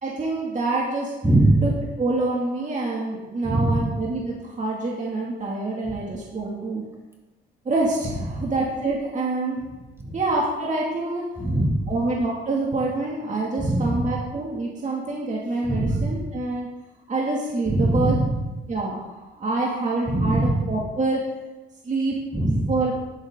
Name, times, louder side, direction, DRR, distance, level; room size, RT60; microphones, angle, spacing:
voice 1, 0.0-1.1 1.6-6.8 7.6-9.8 10.1-11.2 11.9-16.7 17.1-18.2 18.7-21.2 21.8-22.1 22.6-22.9, right 2 dB, 40° right, -4 dB, 2.4 m, -26 dB
voice 2, 1.2-1.7 3.4-3.8 11.4-11.8 13.6-14.0 15.6-16.0 17.7-18.2 20.1-20.5 22.3-22.7, right 1 dB, 10° right, -1 dB, 2.5 m, -21 dB
10.5 x 9.5 x 3.8 m, 1.1 s
cardioid pair, 90°, 20 cm